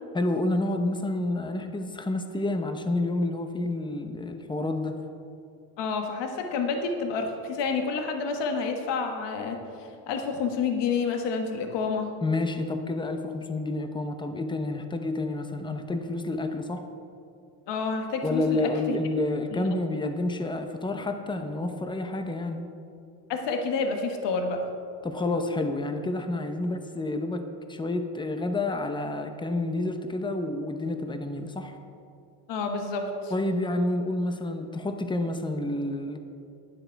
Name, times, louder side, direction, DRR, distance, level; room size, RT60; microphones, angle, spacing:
voice 1, 0.1-5.0 12.2-16.8 18.2-22.7 25.0-31.7 33.3-36.2, left 2 dB, 10° left, 7 dB, 0.9 m, -29 dB
voice 2, 5.8-12.1 17.7-19.0 19.5-19.7 23.3-24.6 32.5-33.3, left 4 dB, 55° left, 4 dB, 1.5 m, -29 dB
12.0 x 9.7 x 4.6 m, 2.5 s
cardioid pair, 110°, 49 cm